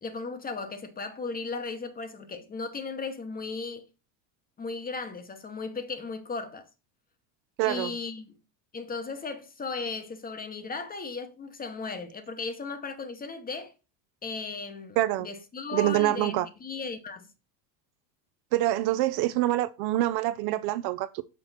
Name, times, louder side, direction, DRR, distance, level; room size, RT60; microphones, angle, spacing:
voice 1, 0.0-3.9 4.6-6.7 7.6-8.3 8.7-13.7 14.2-17.3, left 4 dB, 20° left, 0.8 m, -36 dB
voice 2, 7.6-7.9 15.0-15.3 15.7-16.5 18.5-21.2, right 15 dB, 55° right, 0.5 m, -26 dB
6.1 x 4.5 x 4.1 m
supercardioid pair, 110°, 47 cm